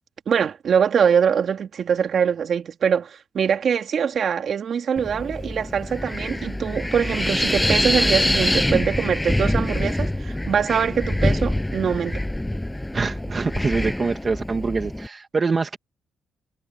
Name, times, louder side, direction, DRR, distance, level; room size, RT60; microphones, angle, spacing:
voice 1, 0.3-12.2, right 7 dB, 55° right, 3.0 m, -23 dB
Wind, 5.0-15.1, left 1 dB, 10° left, 6.9 m, -25 dB
voice 2, 12.9-15.8, right 4 dB, 35° right, 1.9 m, -25 dB
cardioid pair, 90°, 0 cm